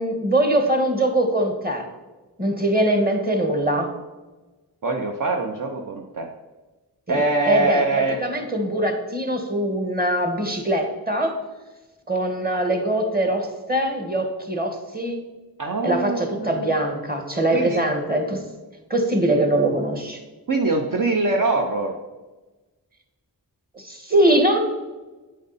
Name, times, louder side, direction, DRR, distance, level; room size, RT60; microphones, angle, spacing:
voice 1, 0.0-1.8 2.4-3.9 7.1-11.3 12.1-15.2 15.8-18.4 18.9-20.2 23.7-24.6, right 1 dB, 25° right, 4 dB, 1.5 m, -22 dB
voice 2, 4.8-6.3 7.1-8.2 15.6-16.7 17.5-17.8 20.5-21.9, right 3 dB, 55° right, 3 dB, 0.8 m, -23 dB
8.7 x 5.0 x 4.1 m, 1.2 s
wide cardioid pair, 60°, 38 cm